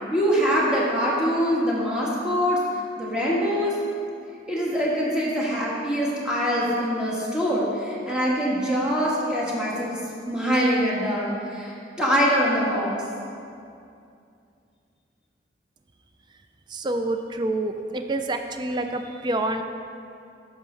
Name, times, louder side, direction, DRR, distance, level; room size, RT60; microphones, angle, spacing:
voice 1, 0.1-2.6 3.0-3.7 4.5-10.0 10.2-12.9, equal, 5° right, -6 dB, 1.3 m, -24 dB
voice 2, 16.7-19.6, right 2 dB, 25° right, 6 dB, 0.3 m, -27 dB
11.0 x 6.1 x 3.2 m, 2.5 s
head